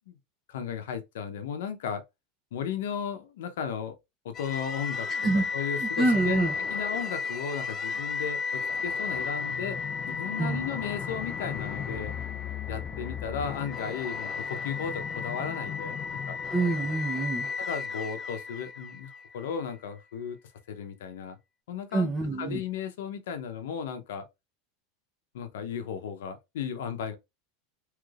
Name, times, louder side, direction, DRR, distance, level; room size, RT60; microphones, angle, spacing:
voice 1, 0.5-2.0 2.5-3.9 4.2-5.1 5.3-9.8 10.1-12.1 12.7-16.4 17.7-20.4 20.7-21.4 21.7-22.1 22.4-24.3 25.3-27.2, left 7 dB, 85° left, 0.7 m, -35 dB
sound 1, 4.3-19.5, left 5 dB, 30° left, 0.4 m, -34 dB
voice 2, 5.8-6.5 10.4-10.6 16.5-17.5 21.9-22.6, right 2 dB, 15° right, 0.7 m, -26 dB
3.2 x 3.1 x 2.4 m
supercardioid pair, 135°, 0 cm